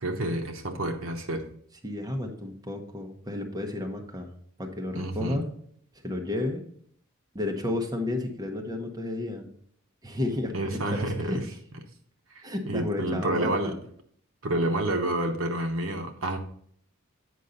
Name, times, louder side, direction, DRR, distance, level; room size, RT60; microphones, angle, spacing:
voice 1, 0.0-1.4 4.9-5.4 10.5-11.5 12.3-13.8 14.4-16.4, right 1 dB, 75° right, 5 dB, 1.0 m, -29 dB
voice 2, 1.8-4.3 4.6-5.4 6.0-6.6 7.3-9.5 10.0-11.4 12.4-13.7, left 1 dB, 20° right, 2 dB, 0.9 m, -32 dB
8.3 x 5.4 x 3.9 m, 0.62 s
head